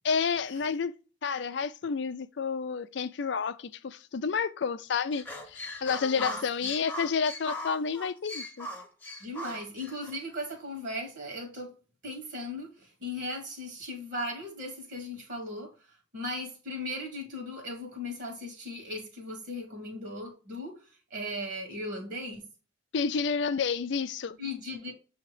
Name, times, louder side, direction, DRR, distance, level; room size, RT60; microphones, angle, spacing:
voice 1, 0.0-0.9 1.2-8.7 22.9-24.4, left 5 dB, 60° left, 0.4 m, -30 dB
sound 1, 5.1-10.2, left 1 dB, 10° left, 0.8 m, -39 dB
voice 2, 9.2-11.7 12.0-22.5 24.4-24.9, left 1 dB, 60° right, 1.4 m, -38 dB
7.0 x 2.8 x 4.8 m
head